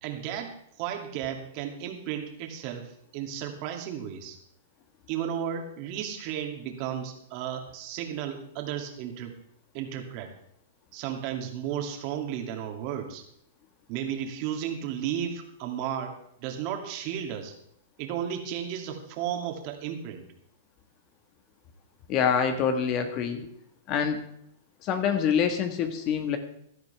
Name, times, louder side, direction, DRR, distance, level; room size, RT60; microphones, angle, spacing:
voice 1, 0.0-4.4 5.1-9.3 9.7-10.3 10.9-13.2 13.9-17.5 18.0-20.2, right 9 dB, 45° right, 4 dB, 2.5 m, -34 dB
voice 2, 22.1-23.4 23.9-24.2 24.8-26.4, left 7 dB, 35° left, 7 dB, 1.5 m, -26 dB
16.5 x 12.0 x 3.5 m, 0.70 s
hypercardioid pair, 145°, 0 cm